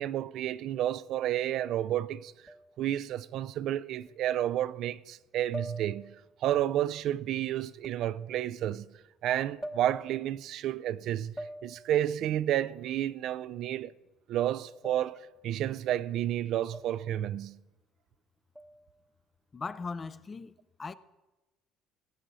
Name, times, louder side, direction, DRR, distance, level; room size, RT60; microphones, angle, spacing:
voice 1, 0.0-2.3 2.8-6.2 6.4-8.9 9.2-11.3 11.6-13.9 14.3-17.6, right 12 dB, 65° right, 0.4 m, -31 dB
sound 1, 2.5-2.9 4.1-4.2 5.5-6.3 7.8-8.1 9.6-10.3 11.4-12.0 14.8-15.3 16.7-17.1 18.6-19.0, equal, ahead, 0.9 m, -44 dB
voice 2, 19.5-20.9, left 4 dB, 25° left, 0.5 m, -39 dB
19.0 x 8.0 x 4.1 m
cardioid pair, 110°, 0 cm